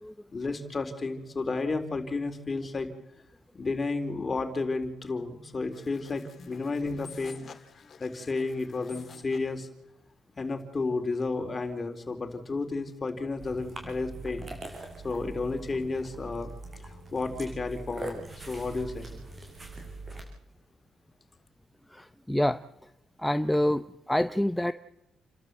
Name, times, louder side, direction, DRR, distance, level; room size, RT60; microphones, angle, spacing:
voice 1, 0.3-2.9 3.5-7.4 8.0-9.7 10.4-14.5 15.0-16.5 16.9-19.1, left 3 dB, 30° left, 6 dB, 4.0 m, -32 dB
sound 1, 5.7-9.5, left 6 dB, 50° left, 2.5 m, -50 dB
sound 2, 13.4-20.2, right 2 dB, 30° right, 6.8 m, -42 dB
voice 2, 21.9-22.9 23.2-24.7, left 1 dB, 5° left, 10 dB, 0.8 m, -27 dB
29.5 x 13.0 x 7.8 m, 0.86 s
cardioid pair, 90°, 0 cm